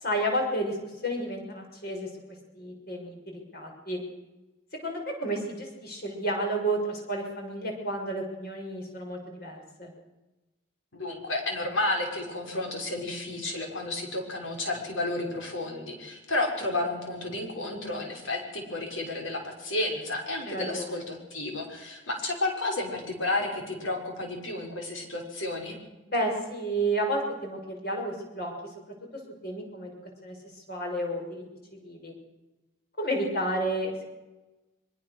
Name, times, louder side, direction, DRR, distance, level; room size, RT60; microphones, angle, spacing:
voice 1, 0.0-4.0 4.8-9.9 20.5-20.9 26.0-31.4 31.7-32.1 33.0-34.1, right 1 dB, 50° left, 2 dB, 6.1 m, -32 dB
voice 2, 10.9-25.8, left 2 dB, 75° left, 2 dB, 6.1 m, -32 dB
24.0 x 21.5 x 6.6 m, 1.1 s
head